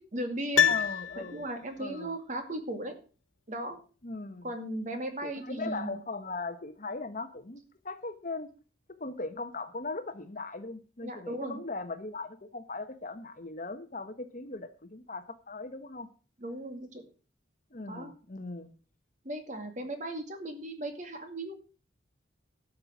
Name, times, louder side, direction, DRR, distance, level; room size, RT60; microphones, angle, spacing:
voice 1, 0.0-0.7 1.2-2.9 3.5-3.8 4.4-6.0 11.0-11.6 16.4-17.0 17.9-18.1 19.2-21.5, right 1 dB, 40° right, 6 dB, 2.3 m, -37 dB
Piano, 0.5-1.8 2.1-2.2, left 9 dB, 80° left, 0.6 m, -27 dB
voice 2, 0.6-1.4 1.8-2.1 4.0-4.5 5.2-8.5 9.0-16.1 17.7-18.7, left 3 dB, 40° left, 9 dB, 1.1 m, -39 dB
12.5 x 6.6 x 7.3 m, 0.38 s
head